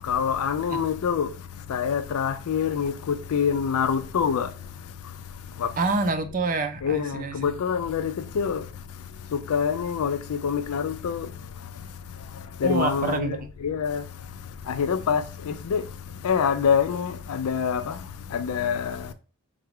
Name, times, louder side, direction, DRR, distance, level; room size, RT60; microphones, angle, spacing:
voice 1, 0.0-1.3 1.7-4.5 5.6-5.7 6.8-8.7 9.3-11.3 12.3-14.0 14.6-15.9 16.2-19.1, left 7 dB, 80° left, 0.4 m, -26 dB
voice 2, 5.8-7.5 12.6-13.5, right 3 dB, 40° right, 0.5 m, -27 dB
3.9 x 2.3 x 4.6 m
head